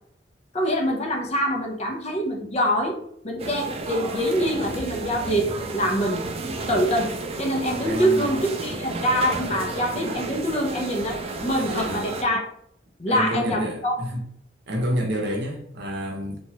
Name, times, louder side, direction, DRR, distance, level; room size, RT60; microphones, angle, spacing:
voice 1, 0.5-3.0 3.2-6.3 6.7-12.4 13.0-14.0, equal, 35° left, 0.6 m, -25 dB
sound 1, 3.4-12.2, right 2 dB, 35° right, 0.4 m, -32 dB
voice 2, 7.9-8.4 11.8-12.1 13.1-14.2 14.7-16.4, equal, 65° right, 0.7 m, -28 dB
2.9 x 2.3 x 2.9 m
head